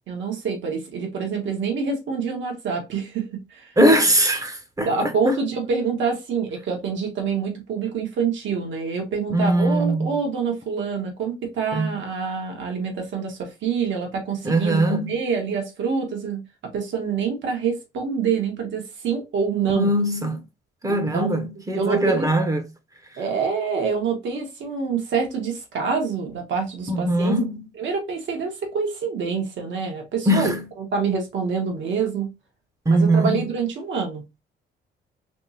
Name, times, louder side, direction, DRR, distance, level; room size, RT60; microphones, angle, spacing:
voice 1, 0.1-3.7 4.8-14.8 15.1-16.4 16.7-19.9 20.9-21.3 21.7-22.3 23.2-27.4 27.8-30.5 30.8-32.3 32.9-34.4, right 5 dB, 70° right, 1.4 m, -26 dB
voice 2, 3.8-5.4 9.3-10.1 11.7-11.9 14.4-15.1 19.7-20.4 20.8-22.6 26.9-27.6 30.3-30.6 32.9-33.4, right 1 dB, 15° right, 0.8 m, -21 dB
3.5 x 3.1 x 2.7 m
cardioid pair, 90°, 20 cm